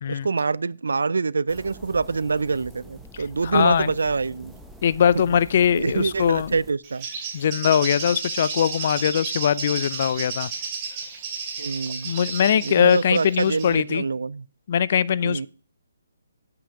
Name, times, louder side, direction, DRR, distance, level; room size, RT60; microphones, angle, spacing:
voice 1, 0.0-4.5 5.7-7.1 11.6-12.1 12.6-14.4 15.2-15.5, right 4 dB, 70° right, 0.3 m, -25 dB
sound 1, 1.5-6.7, equal, ahead, 0.9 m, -45 dB
voice 2, 3.4-3.9 4.8-6.5 7.3-10.5 12.0-14.0 14.7-15.5, left 8 dB, 45° left, 0.4 m, -21 dB
Bird, 6.8-13.7, right 5 dB, 30° right, 2.6 m, -33 dB
7.7 x 5.7 x 4.9 m
figure-of-eight pair, 145°, 0 cm